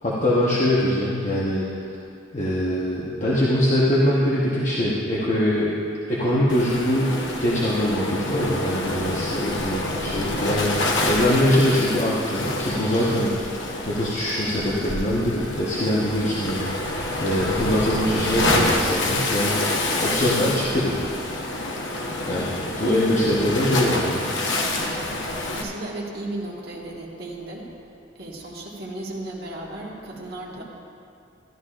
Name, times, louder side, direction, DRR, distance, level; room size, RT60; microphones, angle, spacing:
voice 1, 0.0-1.6 2.3-5.7 6.1-13.3 13.9-16.7 17.2-19.6 20.0-21.0 22.2-22.4 22.8-24.2, left 1 dB, 40° left, -7 dB, 1.1 m, -23 dB
Waves surf, 6.5-25.6, left 2 dB, 70° left, 1.0 m, -27 dB
voice 2, 25.5-27.7 28.2-30.6, right 2 dB, 55° right, -3 dB, 1.6 m, -34 dB
13.5 x 12.0 x 2.5 m, 2.5 s
head